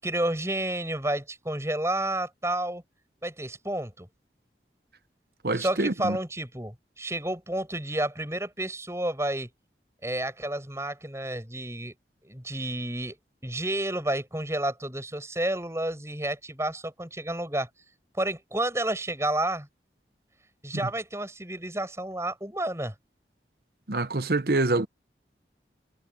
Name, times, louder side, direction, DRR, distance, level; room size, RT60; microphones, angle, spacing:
voice 1, 0.0-2.8 3.2-4.1 5.5-9.5 10.0-11.9 12.2-13.2 13.4-17.7 18.2-19.7 20.6-22.9, right 1 dB, 15° right, 7.7 m, -30 dB
voice 2, 5.4-6.2 20.8-20.9 23.9-24.9, right 2 dB, 60° right, 1.0 m, -26 dB
head